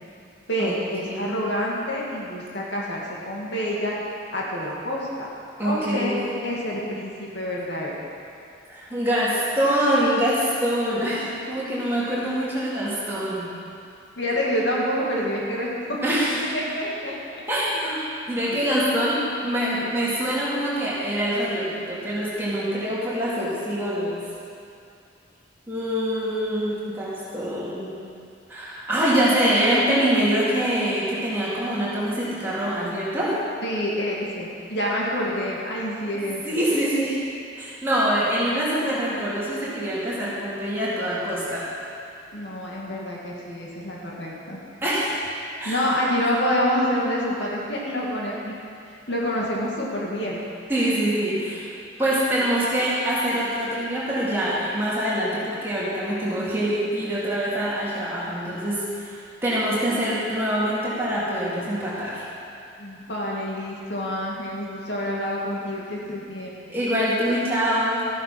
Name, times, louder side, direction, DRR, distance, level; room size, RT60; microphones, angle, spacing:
voice 1, 0.5-3.9 4.3-5.3 5.6-6.2 6.4-7.9 14.2-16.2 16.5-17.1 33.6-36.6 42.3-44.6 45.6-48.5 49.1-50.4 62.8-66.6, equal, 65° left, -4 dB, 2.4 m, -27 dB
voice 2, 5.6-6.2 8.7-13.5 16.0-16.5 17.5-18.0 18.3-24.2 25.7-27.9 28.5-33.4 36.4-37.2 37.6-41.7 44.8-45.2 45.6-45.8 50.7-51.7 52.0-59.2 59.4-62.2 66.7-68.1, equal, 10° right, -9 dB, 3.5 m, -24 dB
14.5 x 9.9 x 6.3 m, 2.5 s
head